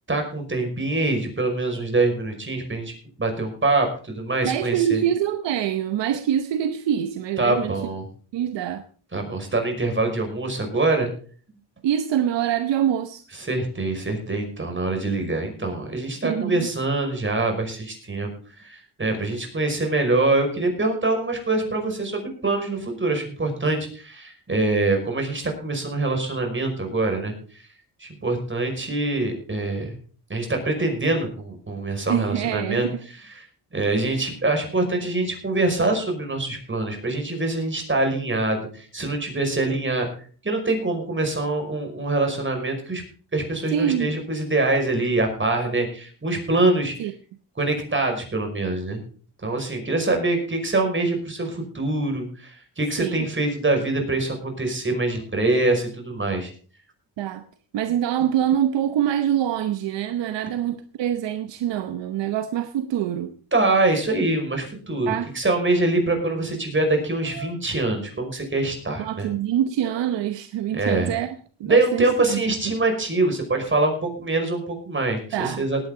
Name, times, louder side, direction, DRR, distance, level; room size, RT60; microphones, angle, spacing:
voice 1, 0.1-2.9 3.2-5.0 7.4-8.1 9.1-11.1 13.5-18.3 18.6-27.6 28.0-30.0 30.3-32.9 33.4-33.5 33.7-40.1 40.4-43.0 43.3-46.9 47.6-49.0 49.4-56.5 63.5-69.3 70.7-71.1 71.6-75.9, right 2 dB, 25° right, 5.5 m, -24 dB
voice 2, 4.4-7.7 8.3-8.8 11.8-13.2 16.2-16.7 32.1-33.0 43.7-44.1 47.0-47.1 53.0-53.3 57.2-57.4 57.7-63.3 65.1-65.3 69.0-71.3 71.6-72.7 75.3-75.7, right 10 dB, 85° right, 0.9 m, -25 dB
19.5 x 9.3 x 3.8 m
cardioid pair, 75°, 42 cm